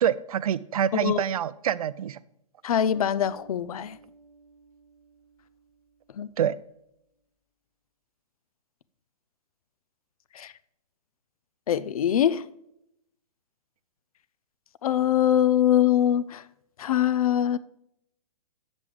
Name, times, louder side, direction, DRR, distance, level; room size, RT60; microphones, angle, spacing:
voice 1, 0.0-2.2 6.4-6.5, right 9 dB, 65° right, 0.5 m, -26 dB
voice 2, 0.9-1.2 2.6-4.0 6.2-6.3 10.3-10.5 11.7-12.5 14.8-16.4 16.8-17.6, left 10 dB, 65° left, 0.5 m, -23 dB
Bass guitar, 2.9-6.4, right 2 dB, ahead, 1.6 m, -54 dB
7.4 x 7.1 x 4.8 m
hypercardioid pair, 120°, 20 cm